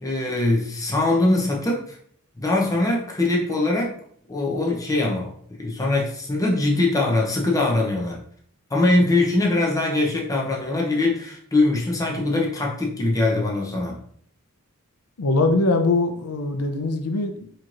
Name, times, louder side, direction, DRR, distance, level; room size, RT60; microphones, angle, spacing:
voice 1, 0.0-2.0 2.4-3.9 4.3-5.3 5.6-8.2 8.7-14.0, left 2 dB, 15° left, -2 dB, 0.7 m, -22 dB
voice 2, 15.2-17.5, left 2 dB, 85° left, 5 dB, 0.6 m, -22 dB
4.3 x 3.0 x 2.5 m, 0.62 s
head